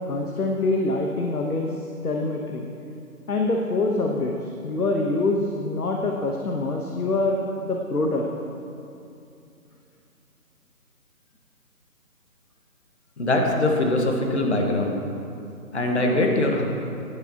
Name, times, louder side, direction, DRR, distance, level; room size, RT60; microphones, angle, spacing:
voice 1, 0.1-1.7 2.0-2.7 3.3-8.3, left 2 dB, 75° left, 1 dB, 1.2 m, -25 dB
voice 2, 13.2-15.0 15.7-16.6, left 1 dB, 45° left, 1 dB, 1.5 m, -22 dB
15.5 x 10.5 x 2.9 m, 2.7 s
figure-of-eight pair, 170°, 45 cm